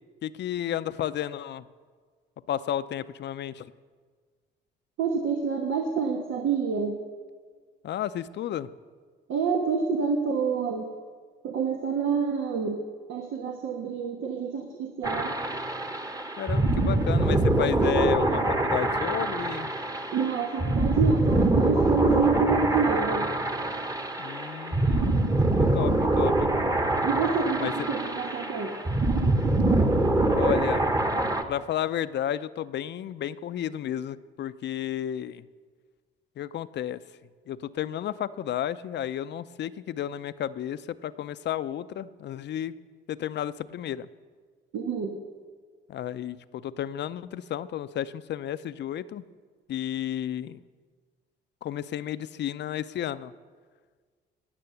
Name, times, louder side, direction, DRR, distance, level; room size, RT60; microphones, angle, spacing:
voice 1, 0.2-1.7 2.5-3.7 7.8-8.7 16.4-19.7 24.2-25.2 25.7-26.5 27.6-27.9 30.3-31.0 31.5-35.5 36.4-37.0 37.5-42.7 43.1-44.1 45.9-49.2 49.7-50.6 51.6-53.3, left 10 dB, 60° left, 15 dB, 0.5 m, -32 dB
voice 2, 5.0-7.0 9.3-10.9 11.4-12.8 13.1-15.3 20.1-23.3 27.0-28.7 44.7-45.2, right 5 dB, 85° right, 2 dB, 1.2 m, -27 dB
sound 1, 15.0-31.4, right 2 dB, 20° right, 1.1 m, -25 dB
19.0 x 6.9 x 6.9 m, 1.6 s
cardioid pair, 90°, 20 cm